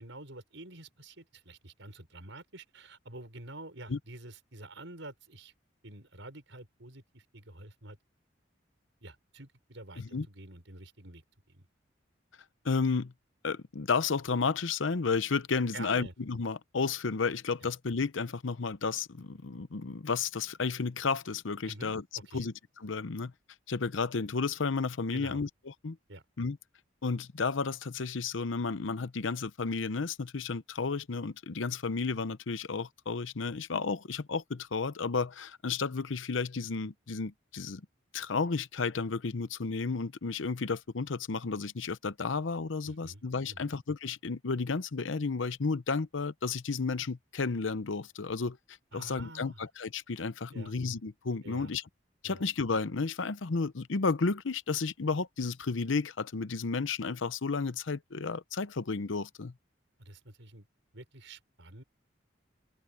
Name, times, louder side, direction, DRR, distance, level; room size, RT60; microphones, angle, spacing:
voice 1, 0.0-5.5 5.8-8.0 9.0-11.7 15.7-16.1 17.6-17.7 21.6-22.5 25.1-25.4 26.1-26.2 42.8-43.7 48.9-49.7 50.5-50.7 51.4-51.7 52.2-52.4 60.0-60.7 60.9-61.8, right 2 dB, 75° right, 5.3 m, -48 dB
voice 2, 12.6-13.1 13.4-22.0 22.3-22.5 22.8-23.3 23.7-25.5 25.8-26.0 26.4-26.6 27.0-37.8 38.1-48.6 48.9-51.8 52.2-59.5, left 4 dB, 80° left, 0.8 m, -32 dB
open air
head